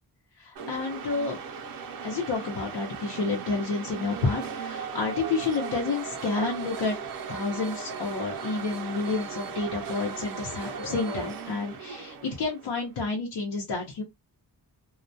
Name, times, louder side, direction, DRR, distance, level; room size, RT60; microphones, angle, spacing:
voice 1, 0.4-1.4 2.0-7.0 7.3-14.0, left 4 dB, 85° left, 0.8 m, -30 dB
sound 1, 0.6-12.9, right 6 dB, 60° right, 0.6 m, -37 dB
2.2 x 2.2 x 2.6 m
wide cardioid pair, 130°, 38 cm